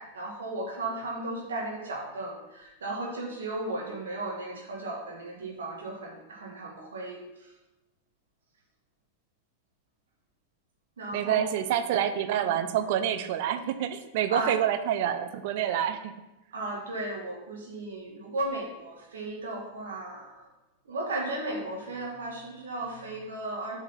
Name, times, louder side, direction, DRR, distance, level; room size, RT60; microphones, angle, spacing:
voice 1, 0.0-7.5 11.0-11.5 12.3-12.4 14.3-14.5 16.5-20.5 20.9-23.8, right 2 dB, 65° right, -2 dB, 1.8 m, -35 dB
voice 2, 11.1-16.1, right 10 dB, 50° right, 10 dB, 0.7 m, -27 dB
7.7 x 4.9 x 5.7 m, 1.0 s
figure-of-eight pair, 90°, 0 cm